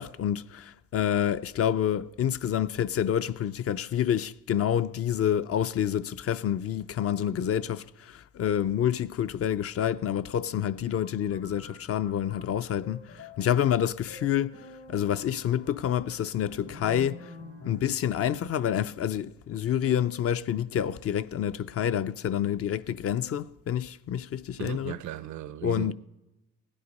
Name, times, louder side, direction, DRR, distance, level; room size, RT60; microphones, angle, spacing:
voice 1, 0.0-17.3 17.7-25.0 25.6-25.9, left 9 dB, 50° left, 0.5 m, -28 dB
sound 1, 11.0-18.0, left 2 dB, 85° left, 5.9 m, -48 dB
voice 2, 24.6-25.9, right 11 dB, 70° right, 0.6 m, -36 dB
16.5 x 10.0 x 5.3 m
cardioid pair, 90°, 30 cm